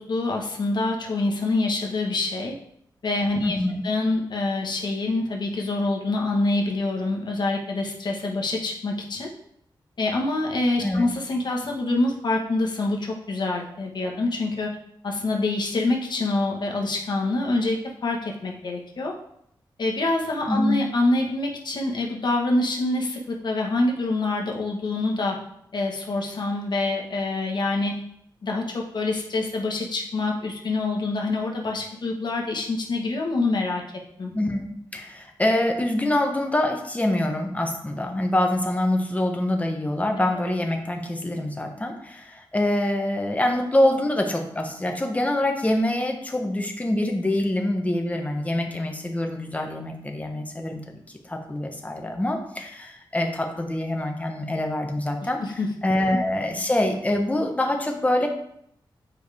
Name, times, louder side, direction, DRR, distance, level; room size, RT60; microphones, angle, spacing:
voice 1, 0.0-2.5 3.0-3.6 3.8-9.3 10.0-14.8 15.0-19.1 19.8-25.4 25.7-28.0 28.4-33.8 34.2-34.3 55.2-55.7 56.1-56.2, left 2 dB, 60° left, 0 dB, 1.4 m, -26 dB
voice 2, 3.4-3.8 10.8-11.1 20.5-20.8 34.3-50.8 51.3-55.4 55.8-58.3, left 1 dB, 15° left, 3 dB, 1.1 m, -25 dB
9.1 x 5.0 x 3.5 m, 0.73 s
wide cardioid pair, 110°, 9 cm